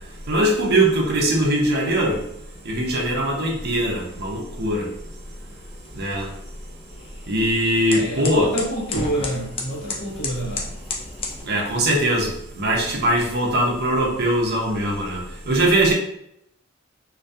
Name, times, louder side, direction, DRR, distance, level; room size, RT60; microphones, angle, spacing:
voice 1, 0.3-2.2 2.7-4.9 6.0-6.3 7.3-8.5 11.5-12.3 12.6-15.2 15.5-15.9, right 1 dB, 50° right, -1 dB, 0.6 m, -21 dB
sound 1, 4.6-11.4, left 3 dB, 25° left, 0.3 m, -35 dB
voice 2, 7.9-10.7, right 1 dB, 65° left, -2 dB, 0.7 m, -27 dB
2.2 x 2.2 x 2.6 m, 0.75 s
head